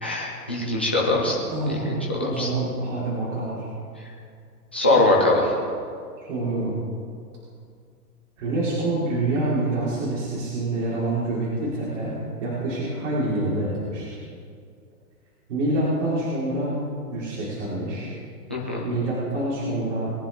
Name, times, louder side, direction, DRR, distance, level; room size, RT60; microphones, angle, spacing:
voice 1, 0.0-1.4 1.9-2.5 4.7-5.5 18.5-18.9, left 2 dB, 10° left, -4 dB, 0.3 m, -22 dB
voice 2, 1.5-3.7 6.2-6.7 8.4-14.1 15.5-16.8 17.1-18.1 18.8-20.1, right 2 dB, 50° right, -8 dB, 4.3 m, -26 dB
21.5 x 10.5 x 3.6 m, 2.3 s
hypercardioid pair, 150°, 47 cm